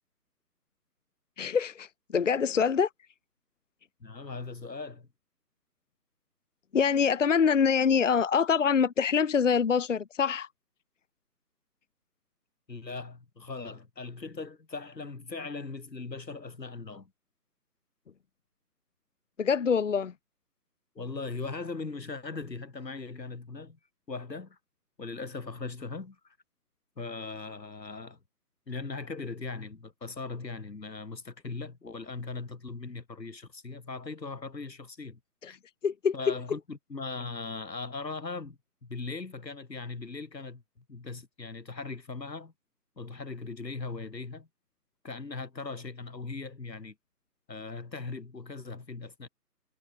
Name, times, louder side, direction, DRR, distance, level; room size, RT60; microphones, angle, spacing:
voice 1, 1.4-2.9 6.7-10.5 19.4-20.1 35.4-35.5 35.8-36.3, left 6 dB, 50° left, 1.0 m, -25 dB
voice 2, 4.0-5.1 12.7-17.1 21.0-23.8 24.1-24.6 25.0-26.2 27.0-28.2 28.7-35.2 36.1-40.6 40.9-42.5 43.0-44.5 45.0-46.9 47.5-49.3, left 3 dB, 85° left, 2.7 m, -39 dB
figure-of-eight pair, 155°, 49 cm